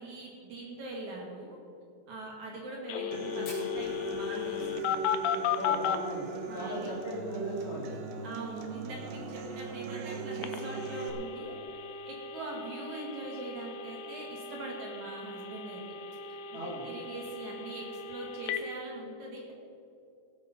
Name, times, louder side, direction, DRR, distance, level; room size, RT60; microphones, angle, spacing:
voice 1, 0.0-1.6 2.1-4.8 5.9-6.0 6.5-7.0 8.2-11.5 12.1-15.8 16.3-19.5, right 2 dB, 55° right, -1 dB, 2.6 m, -42 dB
Telephone, 2.9-6.0 10.4-18.6, left 8 dB, 85° left, 2.9 m, -36 dB
Human voice / Acoustic guitar, 3.1-11.1, right 4 dB, 90° right, 3.3 m, -39 dB
Fire, 3.4-8.0 8.2-8.3 8.6-8.7 9.0-9.5 10.0-10.1 11.1-11.3, left 2 dB, 35° left, 4.4 m, -51 dB
voice 2, 5.6-8.1 16.5-16.8, right 1 dB, 20° right, -6 dB, 2.0 m, -37 dB
17.5 x 8.2 x 5.8 m, 2.6 s
omnidirectional pair, 5.0 m